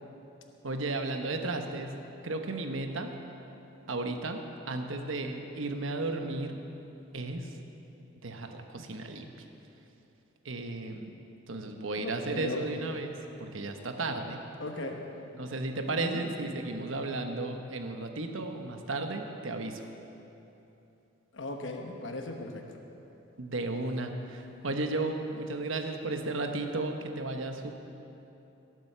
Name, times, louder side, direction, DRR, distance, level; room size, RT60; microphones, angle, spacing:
voice 1, 0.6-1.9 2.2-3.1 3.9-4.4 4.7-6.6 7.1-7.4 8.2-9.3 10.4-11.1 11.5-13.1 13.4-14.4 15.4-19.7 23.4-27.7, right 2 dB, 75° right, 5 dB, 1.1 m, -34 dB
voice 2, 12.0-12.6 14.6-15.0 15.9-16.2 21.3-22.8, left 2 dB, 65° left, 3 dB, 1.1 m, -37 dB
18.0 x 7.8 x 6.8 m, 2.9 s
head